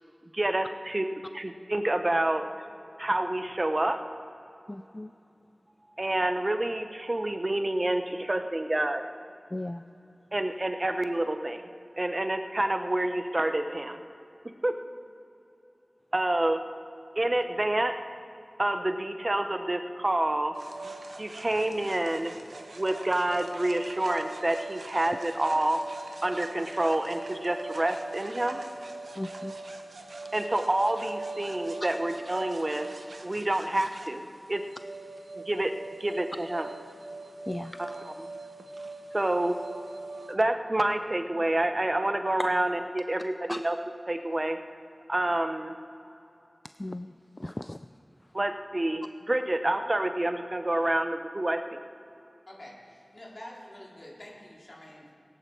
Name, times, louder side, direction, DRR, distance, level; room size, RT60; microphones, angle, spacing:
voice 1, 0.3-2.5 3.0-4.0 6.0-9.0 10.3-11.7 12.0-14.0 14.6-14.7 16.1-16.6 17.2-17.9 18.6-20.5 21.2-22.3 22.7-25.8 26.2-28.6 30.3-32.9 33.2-34.2 34.5-34.6 35.3-35.7 36.0-36.7 37.8-38.3 39.1-39.5 40.3-43.8 44.1-44.6 45.1-45.7 48.3-51.8, right 1 dB, 40° right, 7 dB, 0.7 m, -28 dB
voice 2, 4.7-5.1 9.5-9.8 29.2-29.5 37.5-37.8 43.5-43.6 46.8-47.1 47.4-47.8, left 1 dB, 30° left, 10 dB, 0.3 m, -36 dB
sound 1, 20.5-40.3, right 2 dB, 90° right, 0.9 m, -41 dB
voice 3, 52.5-55.1, left 1 dB, 65° left, -4 dB, 3.1 m, -47 dB
17.5 x 10.0 x 4.5 m, 2.8 s
wide cardioid pair, 45°, 0 cm